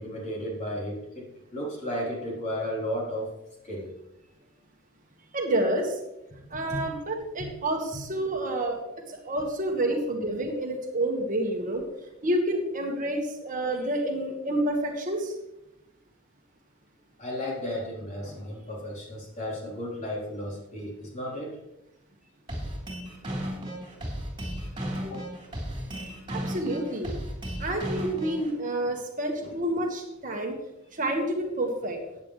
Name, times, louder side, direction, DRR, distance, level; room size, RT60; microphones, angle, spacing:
voice 1, 0.0-3.3 3.6-3.9 6.7-6.8 7.4-7.5 7.9-8.0 17.2-21.6 25.0-25.3, equal, 35° left, -4 dB, 3.7 m, -34 dB
voice 2, 5.3-6.0 6.5-8.8 9.1-11.8 12.2-15.3 26.3-27.1 27.6-30.6 30.9-32.0, right 1 dB, 40° right, 2 dB, 1.5 m, -29 dB
sound 1, 22.5-28.5, equal, 25° right, 3.7 m, -34 dB
15.0 x 9.7 x 3.2 m, 0.89 s
head